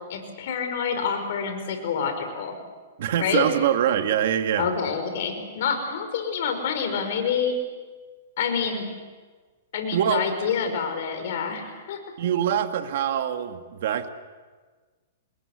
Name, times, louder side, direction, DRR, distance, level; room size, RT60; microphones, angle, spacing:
voice 1, 0.1-2.5 3.2-3.5 4.6-7.6 8.4-8.8 9.7-12.0, left 6 dB, 60° left, 6 dB, 5.4 m, -27 dB
voice 2, 3.0-4.7 9.9-10.3 12.2-14.1, right 10 dB, 60° right, 6 dB, 2.0 m, -24 dB
27.0 x 21.5 x 8.2 m, 1.4 s
hypercardioid pair, 150°, 0 cm